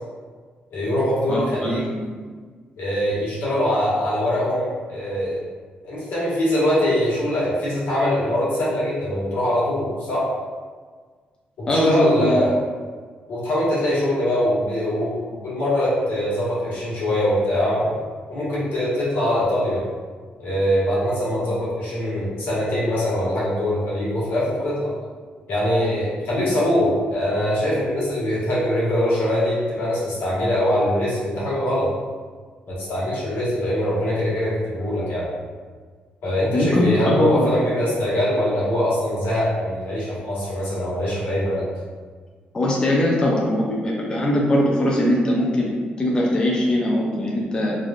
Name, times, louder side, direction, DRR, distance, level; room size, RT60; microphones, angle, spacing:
voice 1, 0.7-1.8 2.8-5.4 5.8-10.3 11.6-12.5 13.3-18.0 18.3-19.9 20.4-24.9 25.5-31.9 32.7-35.3 36.2-41.6, left 1 dB, 85° left, -8 dB, 1.3 m, -22 dB
voice 2, 1.3-2.1 11.7-12.4 36.5-37.5 42.5-45.7 46.0-47.8, left 1 dB, 25° left, -4 dB, 0.4 m, -21 dB
3.2 x 2.5 x 2.4 m, 1.5 s
cardioid pair, 150°, 3 cm